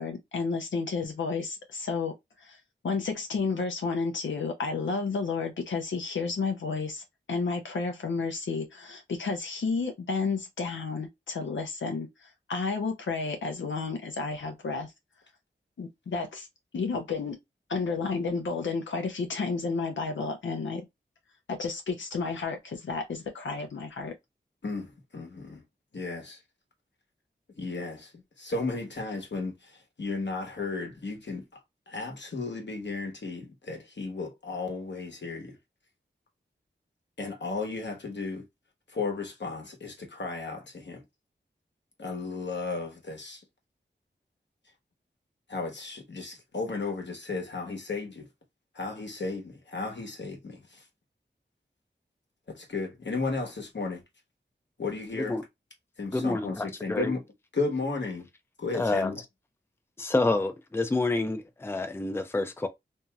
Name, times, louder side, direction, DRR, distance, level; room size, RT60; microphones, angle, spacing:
voice 1, 0.0-2.6 2.8-14.9 15.8-16.5 16.7-17.4 17.7-20.8 21.5-24.1, left 4 dB, 85° left, 0.6 m, -31 dB
voice 2, 24.6-25.6 25.9-26.4 27.5-31.4 31.9-35.6 37.2-38.4 38.9-41.0 42.0-43.4 45.5-48.3 48.7-50.8 52.5-54.0 54.8-55.4 56.0-57.2 57.5-58.3 58.6-59.2, left 3 dB, 70° left, 1.0 m, -34 dB
voice 3, 56.1-57.1 58.7-59.1 60.0-62.7, left 2 dB, 10° left, 0.5 m, -28 dB
2.9 x 2.7 x 2.2 m
wide cardioid pair, 50°, 19 cm